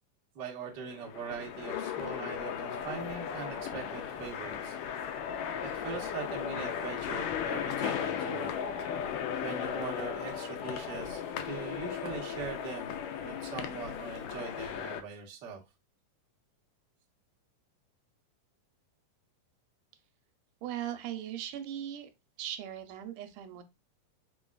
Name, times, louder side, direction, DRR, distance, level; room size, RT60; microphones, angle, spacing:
voice 1, 0.3-4.8 5.6-8.6 9.4-15.6, right 5 dB, 55° right, 1.2 m, -41 dB
sound 1, 0.7-15.0, left 8 dB, 85° left, 2.2 m, -36 dB
voice 2, 20.6-22.1 22.4-23.6, right 11 dB, 85° right, 2.1 m, -38 dB
4.9 x 3.9 x 2.3 m
omnidirectional pair, 3.7 m